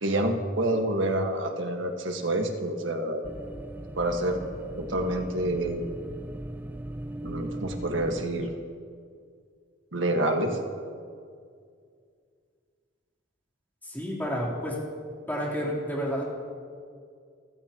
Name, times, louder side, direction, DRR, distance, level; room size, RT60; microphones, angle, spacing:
voice 1, 0.0-3.2 4.0-4.4 4.8-5.8 7.2-8.5 9.9-10.6, right 1 dB, 75° right, 3 dB, 1.7 m, -27 dB
sound 1, 3.2-8.3, right 1 dB, 10° right, 0.6 m, -39 dB
voice 2, 13.8-14.8 15.3-16.4, equal, 10° left, -6 dB, 3.7 m, -30 dB
29.0 x 15.5 x 3.0 m, 2.2 s
head